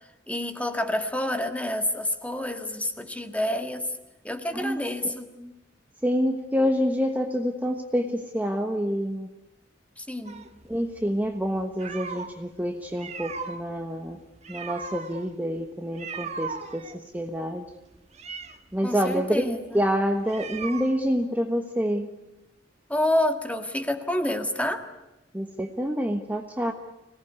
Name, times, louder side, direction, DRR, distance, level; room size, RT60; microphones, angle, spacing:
voice 1, 0.3-3.9 4.2-5.3 10.0-10.4 18.8-19.8 22.9-24.8, left 1 dB, 10° left, 6 dB, 1.8 m, -28 dB
voice 2, 6.0-9.3 10.7-14.2 14.5-17.6 18.7-22.1 25.3-26.7, equal, 10° right, 3 dB, 1.2 m, -27 dB
sound 1, 10.3-12.4 12.8-21.2, right 5 dB, 35° right, 1.5 m, -38 dB
25.5 x 18.5 x 9.6 m, 0.97 s
head